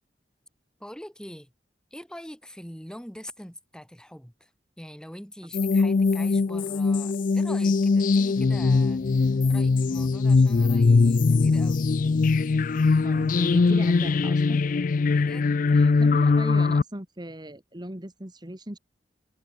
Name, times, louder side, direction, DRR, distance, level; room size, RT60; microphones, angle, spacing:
voice 1, 0.8-1.5 1.9-4.5 4.8-12.1 15.0-15.6, equal, 5° left, 4.4 m, -44 dB
sound 1, 5.5-16.8, left 4 dB, 50° left, 0.4 m, -21 dB
voice 2, 13.0-14.7 15.7-18.8, right 1 dB, 25° right, 2.1 m, -38 dB
head